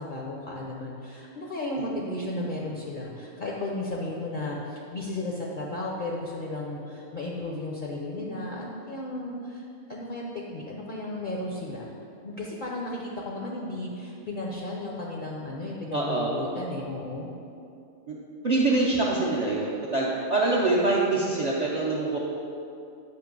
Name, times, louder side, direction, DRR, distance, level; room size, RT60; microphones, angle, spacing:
voice 1, 0.0-11.9 12.2-17.3, left 2 dB, 55° left, -2 dB, 0.6 m, -34 dB
voice 2, 15.9-16.3 18.1-18.2 18.4-22.2, right 2 dB, 45° right, -4 dB, 0.5 m, -25 dB
7.8 x 2.7 x 5.2 m, 2.6 s
omnidirectional pair, 1.3 m